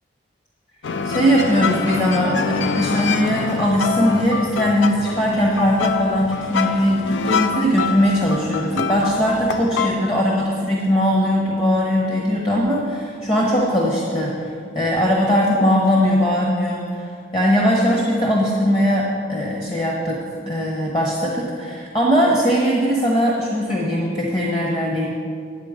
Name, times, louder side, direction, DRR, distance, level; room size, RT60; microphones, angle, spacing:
sound 1, 0.8-9.9, left 5 dB, 70° left, 0.4 m, -25 dB
voice 1, 1.0-14.5 14.7-20.2 20.5-25.1, equal, 25° left, -2 dB, 1.1 m, -20 dB
9.5 x 8.1 x 5.1 m, 2.2 s
head